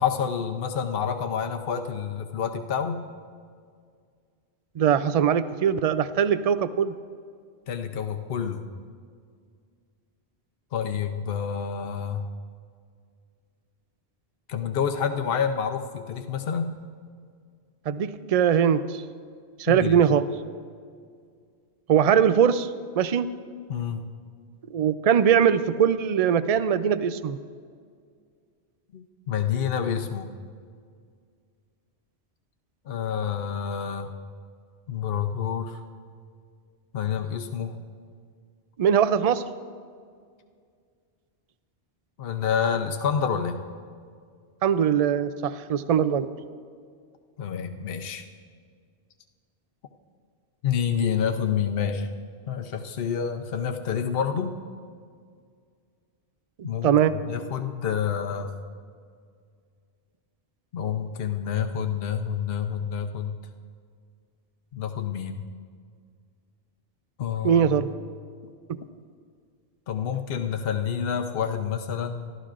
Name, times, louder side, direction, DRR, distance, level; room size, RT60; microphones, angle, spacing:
voice 1, 0.0-3.0 7.7-8.7 10.7-12.2 14.5-16.7 19.7-20.0 23.7-24.1 28.9-30.3 32.9-34.1 34.9-35.8 36.9-37.8 42.2-43.6 47.4-48.3 50.6-52.1 52.5-54.6 56.6-58.5 60.7-63.4 64.7-65.5 67.2-67.8 69.9-72.3, left 7 dB, 65° left, 5 dB, 1.0 m, -28 dB
voice 2, 4.8-6.9 17.9-19.0 19.6-20.3 21.9-22.7 23.0-23.3 24.7-27.4 38.8-39.4 44.6-46.3 56.8-57.1 67.4-67.9 68.7-68.8, right 8 dB, 50° right, 13 dB, 0.5 m, -21 dB
28.0 x 13.5 x 2.5 m, 2.1 s
omnidirectional pair, 1.1 m